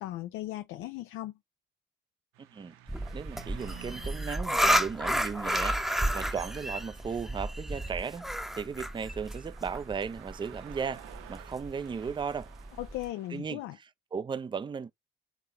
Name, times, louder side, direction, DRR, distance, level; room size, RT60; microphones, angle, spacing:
voice 1, 0.0-1.3 12.8-13.8, left 15 dB, 75° left, 0.5 m, -37 dB
sound 1, 2.3-13.4, right 12 dB, 80° right, 0.7 m, -52 dB
sound 2, 2.9-13.1, equal, ahead, 0.8 m, -32 dB
voice 2, 3.1-5.8 6.1-8.3 8.6-12.5 13.3-14.9, right 6 dB, 25° right, 0.5 m, -36 dB
3.9 x 3.0 x 3.3 m
supercardioid pair, 60°, 21 cm